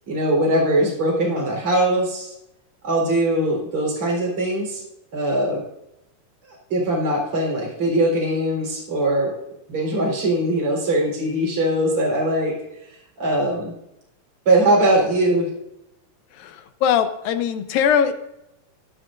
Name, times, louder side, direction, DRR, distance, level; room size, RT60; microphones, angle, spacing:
voice 1, 0.1-2.3 2.8-4.8 5.1-5.6 6.5-9.3 9.7-12.6 13.2-13.7 14.5-15.5, right 1 dB, 40° right, -2 dB, 4.6 m, -21 dB
voice 2, 16.4-18.1, left 8 dB, 85° left, 9 dB, 2.6 m, -21 dB
16.5 x 10.0 x 2.5 m, 0.86 s
omnidirectional pair, 4.0 m